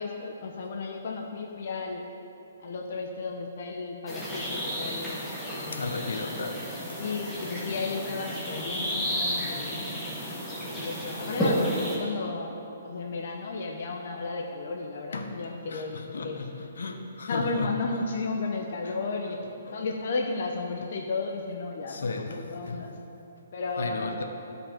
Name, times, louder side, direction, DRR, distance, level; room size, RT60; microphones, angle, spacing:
voice 1, 0.0-2.1 2.6-5.3 5.5-6.0 7.0-9.8 10.7-16.5 17.3-19.4 19.7-22.9 23.5-24.2, left 3 dB, 50° left, 2 dB, 0.7 m, -34 dB
sound 1, 4.1-12.0, equal, 5° left, 1.2 m, -32 dB
voice 2, 5.7-6.6 15.1-15.4 15.7-17.7 18.8-18.9 19.7-19.8 21.9-22.8 23.8-24.2, left 3 dB, 80° left, 4 dB, 0.9 m, -34 dB
13.0 x 5.3 x 4.4 m, 2.9 s
hypercardioid pair, 165°, 0 cm